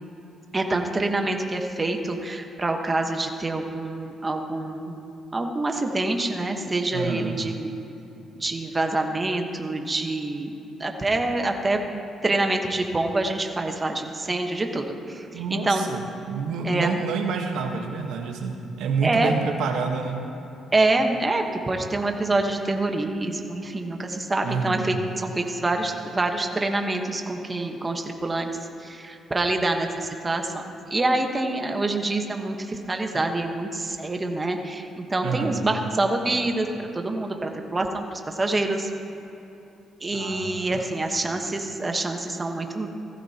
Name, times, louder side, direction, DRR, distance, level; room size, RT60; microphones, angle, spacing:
voice 1, 0.5-4.9 5.3-7.7 8.4-11.8 12.2-15.9 16.6-17.0 19.0-19.3 20.7-24.9 25.2-28.5 28.8-36.7 36.9-38.9 40.0-42.9, right 2 dB, 20° right, 4 dB, 1.1 m, -26 dB
voice 2, 6.9-7.4 15.3-20.2 24.4-25.0 35.2-35.7 40.1-40.9, right 5 dB, 85° right, 3 dB, 1.2 m, -28 dB
17.0 x 15.0 x 2.9 m, 3.0 s
cardioid pair, 105°, 0 cm